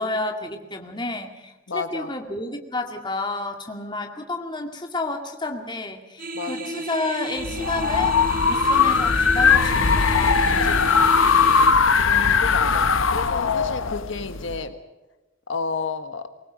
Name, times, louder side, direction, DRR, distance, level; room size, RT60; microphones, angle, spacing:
voice 1, 0.0-11.3, left 2 dB, 20° left, 3 dB, 2.2 m, -31 dB
voice 2, 1.7-2.1 6.3-6.8 11.9-14.7 15.5-16.3, left 4 dB, 70° left, 8 dB, 1.4 m, -31 dB
sound 1, 6.2-11.7, right 2 dB, 45° right, 1.5 m, -32 dB
sound 2, 7.4-14.6, left 5 dB, 85° left, 1.0 m, -19 dB
23.5 x 20.0 x 6.4 m, 1.1 s
head